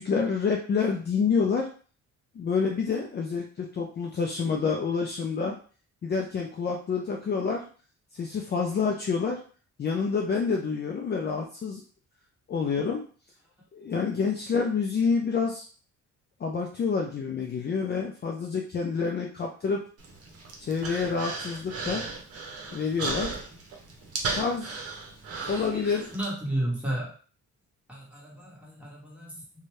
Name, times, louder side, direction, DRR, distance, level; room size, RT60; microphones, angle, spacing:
voice 1, 0.0-1.7 2.4-5.6 6.0-7.6 8.1-9.4 9.8-11.8 12.5-13.0 13.7-15.6 16.4-19.8 20.6-22.0 22.7-23.3 24.3-24.7 25.5-26.1, left 5 dB, 35° left, 0 dB, 0.5 m, -28 dB
Human voice, 20.0-26.2, right 3 dB, 50° right, 0.8 m, -36 dB
voice 2, 25.4-27.1 27.9-29.4, right 1 dB, 5° right, -5 dB, 1.4 m, -33 dB
2.6 x 2.3 x 3.1 m, 0.40 s
cardioid pair, 90°, 30 cm